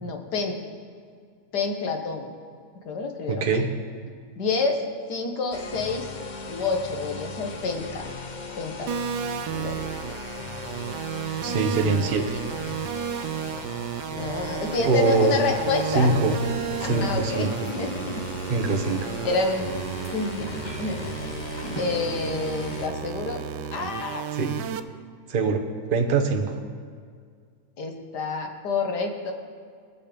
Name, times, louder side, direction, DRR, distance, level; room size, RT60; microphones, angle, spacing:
voice 1, 0.0-0.6 1.5-2.3 2.9-3.6 4.4-4.8 5.1-6.1 6.5-8.1 8.6-8.9 9.6-9.8 11.5-11.6 14.2-16.4 16.8-18.3 19.2-19.8 20.1-21.0 21.8-23.4 23.7-24.3 27.8-29.3, left 3 dB, 75° left, 4 dB, 1.9 m, -28 dB
voice 2, 3.3-3.7 11.4-12.4 14.8-15.4 15.9-16.3 16.8-17.5 18.5-19.2 24.3-24.5 25.3-25.6 25.9-26.6, right 4 dB, 35° right, 4 dB, 1.1 m, -23 dB
sound 1, 5.5-22.9, left 4 dB, 45° left, 0.6 m, -38 dB
sound 2, 8.9-24.8, right 9 dB, 80° right, 1.2 m, -33 dB
sound 3, 14.1-23.6, left 1 dB, 20° left, 1.0 m, -43 dB
20.5 x 7.0 x 5.2 m, 2.1 s
omnidirectional pair, 1.8 m